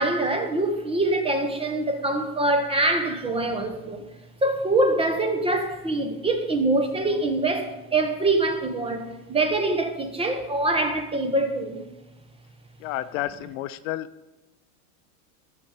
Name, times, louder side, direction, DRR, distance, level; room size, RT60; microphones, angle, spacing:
voice 1, 0.0-4.0 4.4-11.8, right 2 dB, 10° right, 1.0 m, -24 dB
voice 2, 12.8-14.1, left 14 dB, 60° left, 0.6 m, -31 dB
12.5 x 7.1 x 5.1 m
supercardioid pair, 125°, 45 cm